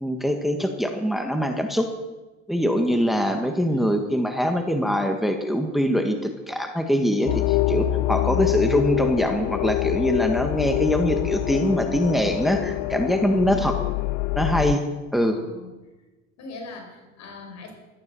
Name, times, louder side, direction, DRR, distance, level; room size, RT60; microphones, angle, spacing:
voice 1, 0.0-1.9 2.5-13.7 14.3-14.8 15.1-15.4, equal, ahead, 5 dB, 1.6 m, -23 dB
sound 1, 7.3-14.8, left 20 dB, 90° left, 0.4 m, -25 dB
voice 2, 15.1-15.7 16.4-17.7, left 3 dB, 70° left, 3 dB, 5.2 m, -40 dB
14.5 x 13.5 x 7.0 m, 1.2 s
cardioid pair, 100°, 29 cm